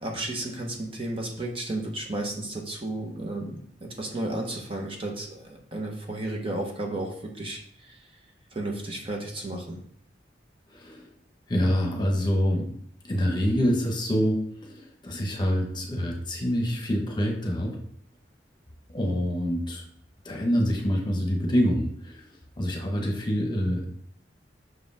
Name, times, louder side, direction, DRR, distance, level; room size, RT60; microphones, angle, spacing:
voice 1, 0.0-7.6 8.5-9.8, right 1 dB, 30° right, 1 dB, 1.0 m, -33 dB
voice 2, 10.7-11.1 11.5-12.7 13.0-17.8 18.9-19.8 20.2-22.2 22.6-23.9, equal, 25° left, 1 dB, 1.2 m, -26 dB
6.3 x 4.9 x 3.6 m, 0.64 s
head